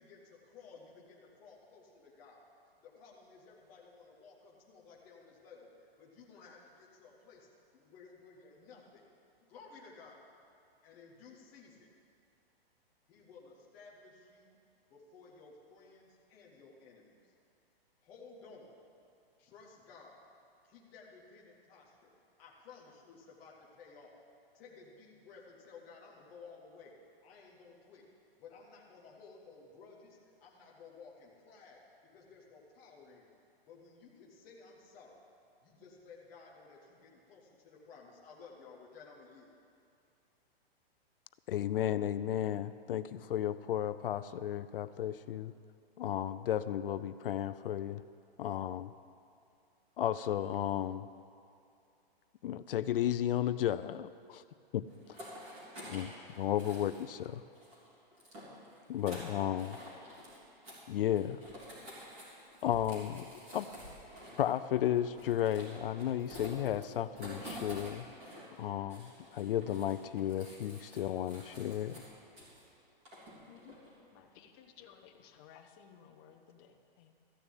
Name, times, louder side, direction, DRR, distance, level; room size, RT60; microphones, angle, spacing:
voice 1, 0.0-2.4 2.8-9.0 9.4-10.2 10.8-11.9 13.1-14.6 14.9-17.3 18.0-18.7 19.4-20.2 20.6-22.1 22.4-24.1 24.5-26.9 27.2-28.0 28.4-31.8 32.1-33.3 33.7-35.2 35.6-39.5, left 4 dB, 5° left, -5 dB, 0.3 m, -56 dB
voice 2, 41.5-45.5 46.0-48.0 48.4-48.9 50.0-51.1 52.4-54.4 54.7-54.8 55.8-57.4 58.9-59.8 60.9-61.4 62.6-63.7 64.4-68.1 68.6-72.0, left 11 dB, 65° left, 13 dB, 0.5 m, -34 dB
sound 1, 54.9-57.3 57.5-60.4 60.6-60.8 61.1-68.6 68.9-72.7 73.1-73.9, equal, 20° right, 3.5 m, -49 dB
voice 3, 73.5-73.8 74.1-77.1, left 8 dB, 25° left, 4 dB, 0.8 m, -58 dB
14.0 x 6.9 x 9.0 m, 2.5 s
hypercardioid pair, 165°, 30 cm